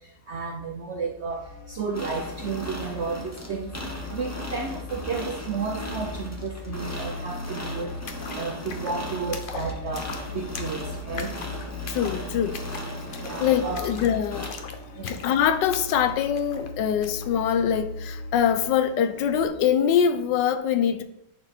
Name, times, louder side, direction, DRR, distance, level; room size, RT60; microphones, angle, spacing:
voice 1, 0.3-3.7 4.1-7.9 8.3-10.1 10.3-11.3 13.2-13.9 15.0-15.2, right 4 dB, 65° right, 0.6 m, -32 dB
sound 1, 1.3-19.5, left 3 dB, 50° left, 1.2 m, -39 dB
sound 2, 1.9-14.5, equal, 15° left, 0.7 m, -38 dB
sound 3, 6.8-6.9 7.1-17.3, left 5 dB, 65° left, 0.5 m, -42 dB
voice 2, 11.9-12.6 13.4-14.5 15.0-21.0, left 8 dB, 85° left, 1.3 m, -23 dB
10.0 x 4.4 x 4.3 m
omnidirectional pair, 1.9 m